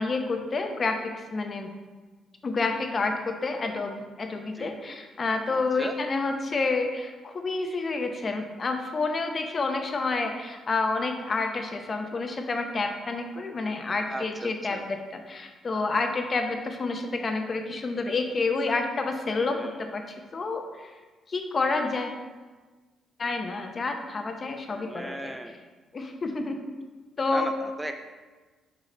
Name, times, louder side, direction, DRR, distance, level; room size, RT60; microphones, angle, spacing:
voice 1, 0.0-1.7 2.4-20.9 21.3-22.2 23.2-25.4 25.9-26.6 27.2-27.5, left 3 dB, 40° left, 5 dB, 0.9 m, -29 dB
voice 2, 4.5-5.0 5.5-6.0 14.1-14.9 19.5-19.8 24.7-25.6 27.3-27.9, right 1 dB, 10° right, 6 dB, 0.4 m, -37 dB
6.6 x 4.8 x 3.9 m, 1.3 s
cardioid pair, 90°, 0 cm